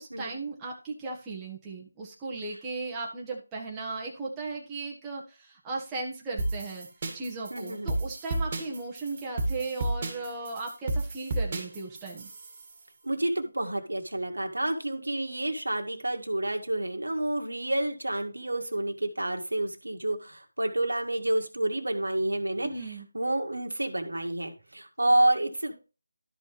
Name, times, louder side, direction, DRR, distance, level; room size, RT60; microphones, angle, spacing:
voice 1, 0.0-6.9 7.1-12.3 22.6-23.1, right 3 dB, 10° right, -4 dB, 1.5 m, -36 dB
sound 1, 6.4-12.7, right 2 dB, 35° right, 2.1 m, -32 dB
voice 2, 7.5-7.9 13.0-25.7, right 1 dB, 85° right, 3 dB, 1.9 m, -29 dB
12.5 x 5.3 x 3.3 m, 0.33 s
figure-of-eight pair, 165°, 0 cm